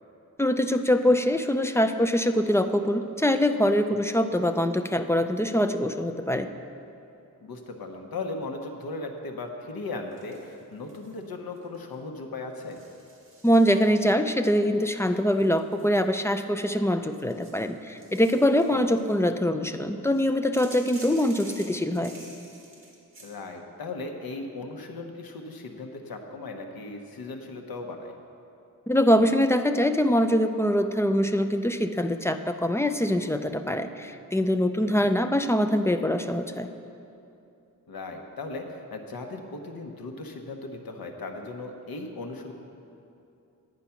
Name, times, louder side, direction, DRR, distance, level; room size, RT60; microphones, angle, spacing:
voice 1, 0.4-6.5 13.4-22.1 28.9-36.7, equal, 10° left, 8 dB, 0.3 m, -23 dB
voice 2, 7.4-12.8 18.7-18.8 23.2-28.2 34.8-35.1 37.9-42.5, left 3 dB, 90° left, 4 dB, 1.1 m, -37 dB
sound 1, 10.1-11.2 11.5-11.9 12.6-14.2 14.9-16.6 17.1-19.2 20.5-23.4, right 2 dB, 35° right, 2.1 m, -50 dB
9.8 x 9.3 x 5.8 m, 2.8 s
wide cardioid pair, 145°, 35 cm